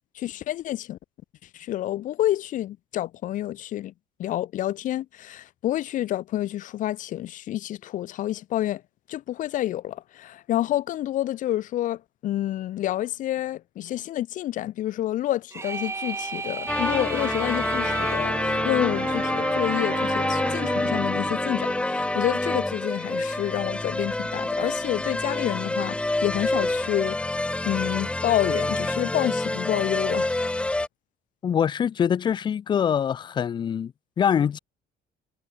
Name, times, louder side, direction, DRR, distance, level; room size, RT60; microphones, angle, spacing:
voice 1, 0.1-1.0 1.5-3.9 4.2-8.8 9.1-27.2 27.6-30.3, left 13 dB, 50° left, 0.9 m, -28 dB
sound 1, 15.5-18.3, right 4 dB, 15° right, 2.8 m, -34 dB
sound 2, 16.7-30.9, left 2 dB, 5° left, 1.3 m, -27 dB
Wind instrument woodwind instrument, 16.8-22.6, right 11 dB, 45° right, 1.5 m, -37 dB
voice 2, 31.4-34.6, left 8 dB, 30° left, 0.6 m, -24 dB
cardioid pair, 170°, 17 cm